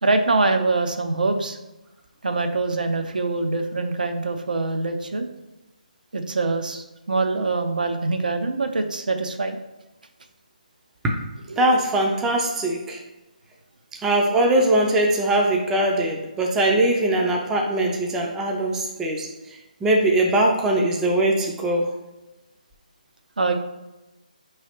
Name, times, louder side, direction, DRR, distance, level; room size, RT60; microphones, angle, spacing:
voice 1, 0.0-1.6 2.2-5.3 6.1-9.6 11.5-11.7 23.4-23.5, right 3 dB, 75° right, 6 dB, 0.5 m, -24 dB
voice 2, 11.6-13.0 14.0-19.3 19.8-21.9, right 1 dB, 10° right, 0 dB, 0.4 m, -21 dB
4.6 x 3.1 x 2.9 m, 1.0 s
figure-of-eight pair, 155°, 5 cm